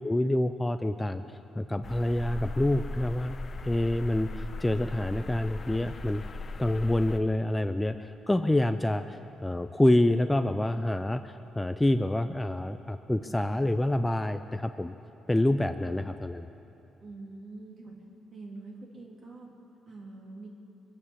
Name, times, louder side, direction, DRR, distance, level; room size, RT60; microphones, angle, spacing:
voice 1, 0.0-1.2 1.5-3.3 3.6-6.2 6.6-14.9 15.3-16.5, left 1 dB, 10° left, 9 dB, 0.5 m, -27 dB
sound 1, 1.8-7.2, left 2 dB, 40° left, 0.8 m, -38 dB
voice 2, 17.0-18.0 18.3-19.5 19.9-20.5, right 3 dB, 50° right, -2 dB, 3.3 m, -44 dB
22.5 x 8.6 x 7.4 m, 2.9 s
cardioid pair, 90°, 0 cm